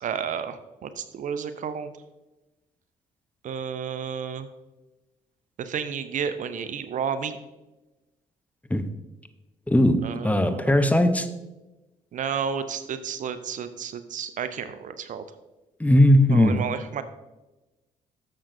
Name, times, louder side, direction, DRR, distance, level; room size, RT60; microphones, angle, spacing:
voice 1, 0.0-1.9 3.4-4.5 5.6-7.4 10.0-10.8 12.1-15.2 16.3-17.0, right 7 dB, 55° right, 0.7 m, -31 dB
voice 2, 9.7-11.3 15.8-16.6, left 1 dB, 10° left, 0.8 m, -19 dB
11.5 x 7.2 x 2.7 m
hypercardioid pair, 50°, 15 cm